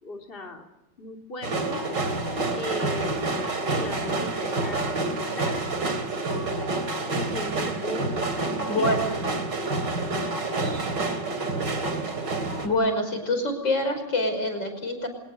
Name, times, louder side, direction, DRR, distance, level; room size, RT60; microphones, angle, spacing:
voice 1, 0.0-0.7 1.0-1.8 2.5-3.4 3.7-5.6 7.1-8.9, left 2 dB, 30° left, 1 dB, 3.5 m, -37 dB
sound 1, 1.4-12.7, right 2 dB, 70° right, 3.7 m, -28 dB
voice 2, 8.6-9.0 12.6-15.1, left 1 dB, 80° left, 6 dB, 6.4 m, -25 dB
25.0 x 20.0 x 8.1 m, 0.96 s
omnidirectional pair, 2.0 m